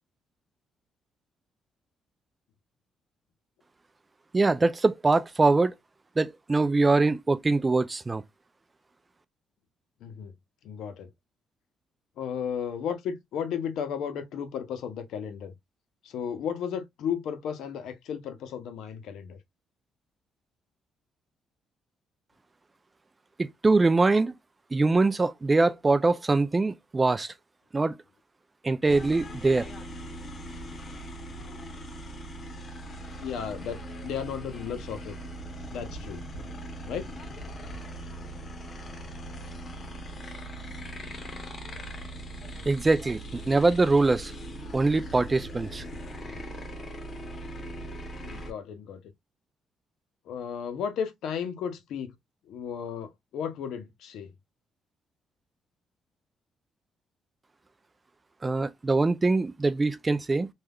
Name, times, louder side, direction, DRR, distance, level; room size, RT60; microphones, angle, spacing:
voice 1, 4.3-5.7 6.2-8.2 23.4-24.3 24.7-27.3 27.7-27.9 28.6-29.7 42.7-44.3 44.7-45.8 58.4-60.5, right 3 dB, 25° right, 0.3 m, -23 dB
voice 2, 10.0-10.3 10.6-11.1 12.2-15.5 16.0-19.4 33.2-35.2 35.7-36.2 36.9-37.1 48.2-49.0 50.3-52.1 52.4-54.3, left 7 dB, 80° left, 0.6 m, -34 dB
sound 1, 28.9-48.5, right 1 dB, 45° left, 0.8 m, -40 dB
3.4 x 2.2 x 2.2 m
cardioid pair, 90°, 0 cm